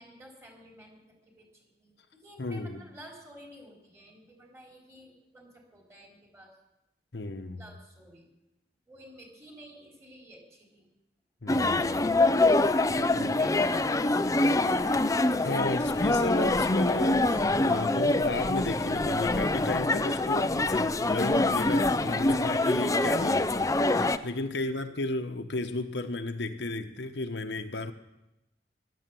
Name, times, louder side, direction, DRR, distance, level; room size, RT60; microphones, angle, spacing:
voice 1, 0.0-6.6 7.6-8.3 8.9-10.9 13.2-14.2 14.6-15.1 24.5-24.9, equal, 15° right, 0 dB, 3.9 m, -52 dB
voice 2, 2.4-2.8 7.1-7.6 11.4-12.2 13.1-13.4 15.4-27.9, left 2 dB, 70° left, 6 dB, 1.1 m, -34 dB
sound 1, 11.5-24.2, left 2 dB, 20° left, 0.5 m, -25 dB
15.5 x 12.0 x 7.7 m, 0.92 s
head